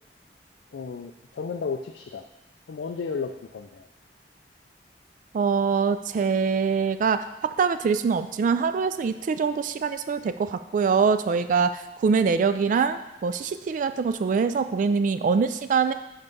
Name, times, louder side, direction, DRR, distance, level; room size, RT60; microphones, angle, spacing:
voice 1, 0.7-2.3 2.7-3.9, left 5 dB, 80° left, 5 dB, 0.4 m, -33 dB
voice 2, 5.3-15.9, right 5 dB, 50° right, 11 dB, 0.3 m, -24 dB
5.5 x 4.7 x 5.3 m, 0.98 s
head